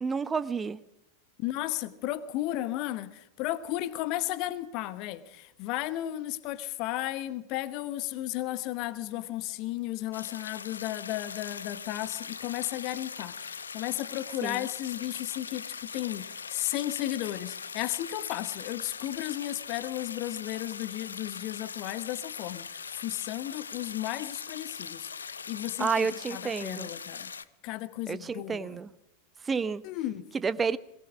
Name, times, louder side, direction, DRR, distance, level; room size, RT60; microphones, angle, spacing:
voice 1, 0.0-0.8 14.4-14.6 25.8-26.9 28.1-28.9 29.4-29.8 30.4-30.8, right 5 dB, 15° right, 0.8 m, -30 dB
voice 2, 1.4-27.3 27.6-28.8 29.8-30.2, left 15 dB, 40° left, 1.2 m, -34 dB
sound 1, 10.1-27.4, left 6 dB, 70° left, 0.8 m, -41 dB
22.0 x 18.5 x 7.4 m
figure-of-eight pair, 90°, 0 cm